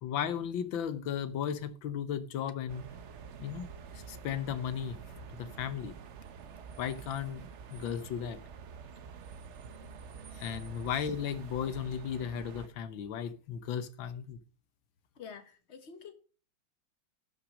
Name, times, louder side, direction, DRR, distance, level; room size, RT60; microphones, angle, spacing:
voice 1, 0.0-2.9 3.4-3.7 4.1-5.0 5.4-5.9 6.8-8.4 10.3-14.4, left 8 dB, 70° left, 1.6 m, -35 dB
sound 1, 2.7-12.7, right 6 dB, 75° right, 0.6 m, -47 dB
voice 2, 15.1-16.1, left 6 dB, 35° left, 1.4 m, -49 dB
11.5 x 6.0 x 6.2 m
omnidirectional pair, 2.2 m